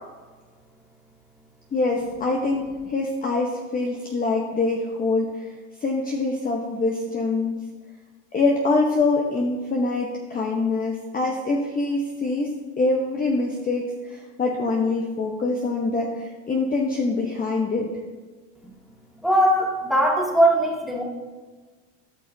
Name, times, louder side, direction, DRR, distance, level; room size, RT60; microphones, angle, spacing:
voice 1, 1.7-5.5 5.8-7.6 8.3-12.5 12.8-17.9, left 3 dB, 20° left, 0 dB, 0.9 m, -24 dB
voice 2, 19.2-21.0, right 1 dB, ahead, -2 dB, 1.9 m, -20 dB
13.0 x 5.6 x 2.7 m, 1.3 s
supercardioid pair, 100°, 38 cm